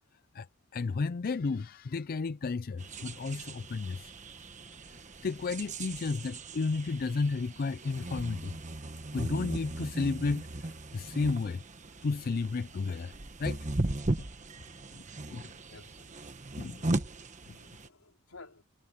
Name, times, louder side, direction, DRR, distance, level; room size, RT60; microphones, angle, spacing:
voice 1, 0.7-4.1 4.9-8.5 9.1-11.6 12.0-13.1 13.4-13.6 14.2-14.3 15.3-15.5 16.6-16.8 17.5-17.6, left 4 dB, 45° left, 0.4 m, -33 dB
sound 1, 2.8-17.9, right 2 dB, 35° right, 1.2 m, -38 dB
voice 2, 15.7-16.1 16.7-17.2 17.6-18.6, left 3 dB, 75° left, 4.1 m, -54 dB
head